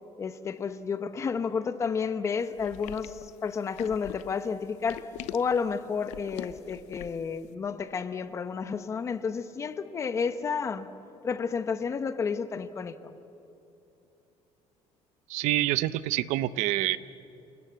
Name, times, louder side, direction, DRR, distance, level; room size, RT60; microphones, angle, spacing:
voice 1, 0.2-10.9 11.2-13.2, left 5 dB, 25° left, 12 dB, 0.9 m, -31 dB
sound 1, 2.6-7.3, left 14 dB, 85° left, 0.8 m, -43 dB
voice 2, 15.3-17.0, right 15 dB, 85° right, 16 dB, 0.7 m, -27 dB
28.5 x 19.0 x 8.1 m, 2.9 s
cardioid pair, 175°, 12 cm